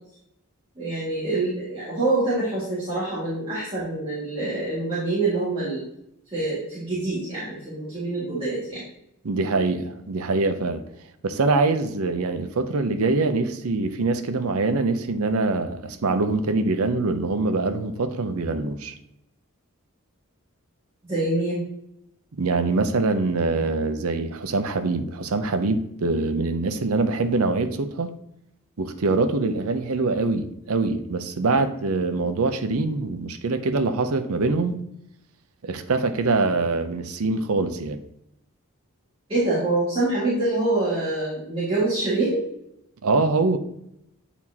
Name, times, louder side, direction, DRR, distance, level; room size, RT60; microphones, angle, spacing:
voice 1, 0.8-5.8 6.3-8.8 21.1-21.6 39.3-42.4, right 2 dB, 25° right, 1.9 m, -25 dB
voice 2, 9.2-10.8 11.2-18.9 22.4-28.1 28.8-34.8 35.6-38.0 43.0-43.6, right 3 dB, 90° right, 0.6 m, -24 dB
8.8 x 4.2 x 2.8 m
head